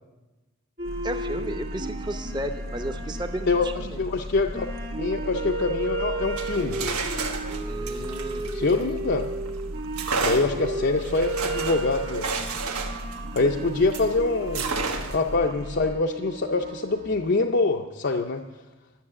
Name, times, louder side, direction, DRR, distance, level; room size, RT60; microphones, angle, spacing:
sound 1, 0.8-17.4, right 2 dB, 40° right, 1.8 m, -35 dB
sound 2, 0.8-15.9, equal, 65° right, 1.0 m, -37 dB
voice 1, 1.0-4.0 7.6-8.5, right 1 dB, 20° right, 6 dB, 0.7 m, -34 dB
voice 2, 3.5-4.7 5.0-6.8 8.5-9.2 10.2-12.3 13.3-14.7 15.1-18.4, left 3 dB, 50° left, 2 dB, 0.5 m, -25 dB
sound 3, 6.2-9.3 9.9-14.1 14.5-15.3, right 4 dB, 85° right, 1.2 m, -31 dB
12.0 x 7.2 x 8.6 m, 1.2 s
head